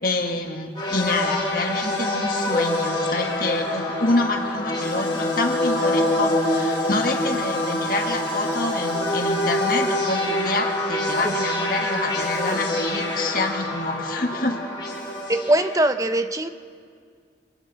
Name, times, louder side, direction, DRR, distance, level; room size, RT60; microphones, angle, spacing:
voice 1, 0.0-14.6, left 2 dB, 55° left, 3 dB, 1.6 m, -27 dB
sound 1, 0.8-15.9, left 1 dB, 25° left, 4.1 m, -25 dB
voice 2, 15.3-16.5, right 1 dB, 20° right, 10 dB, 0.6 m, -21 dB
28.0 x 26.0 x 4.1 m, 2.1 s
head